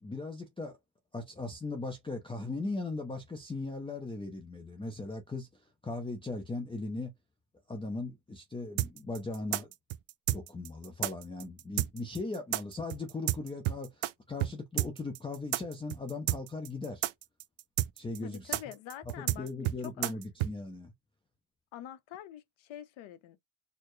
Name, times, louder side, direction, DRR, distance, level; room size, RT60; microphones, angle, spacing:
voice 1, 0.0-0.8 1.1-5.5 5.8-7.1 7.7-9.7 10.3-17.0 18.0-18.6 19.4-20.9, left 3 dB, 10° left, 0.5 m, -38 dB
sound 1, 8.8-14.1 14.4-14.5 14.8-20.5, right 16 dB, 80° right, 0.6 m, -31 dB
voice 2, 18.2-20.1 21.7-23.4, left 11 dB, 75° left, 0.8 m, -46 dB
4.5 x 2.1 x 3.0 m
cardioid pair, 155°, 48 cm